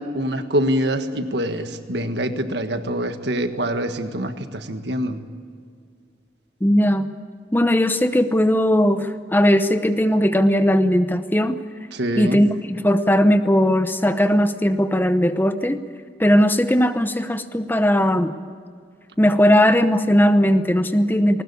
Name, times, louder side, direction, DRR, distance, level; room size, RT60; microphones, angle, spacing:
voice 1, 0.0-5.2 11.9-12.4, right 1 dB, 60° right, 7 dB, 1.7 m, -25 dB
voice 2, 6.6-7.1 7.5-11.6 12.2-15.8 16.2-18.3 19.2-21.4, equal, 10° left, 10 dB, 0.8 m, -18 dB
20.5 x 19.5 x 8.5 m, 2.1 s
head